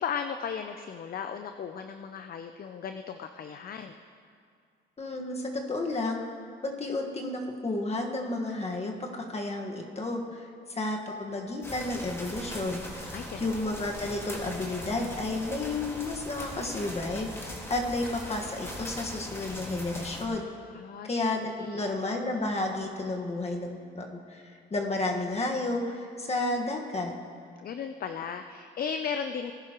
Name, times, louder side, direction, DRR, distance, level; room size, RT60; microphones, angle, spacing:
voice 1, 0.0-3.9 13.1-13.6 20.7-21.1 21.6-21.8 27.6-29.5, left 7 dB, 50° left, 7 dB, 0.6 m, -36 dB
voice 2, 5.0-6.2 6.6-13.0 13.4-20.4 21.0-27.1, left 2 dB, 30° left, 1 dB, 1.6 m, -32 dB
sound 1, 11.6-20.2, left 1 dB, 10° left, 1.9 m, -40 dB
19.0 x 10.5 x 3.0 m, 2.2 s
cardioid pair, 90°, 20 cm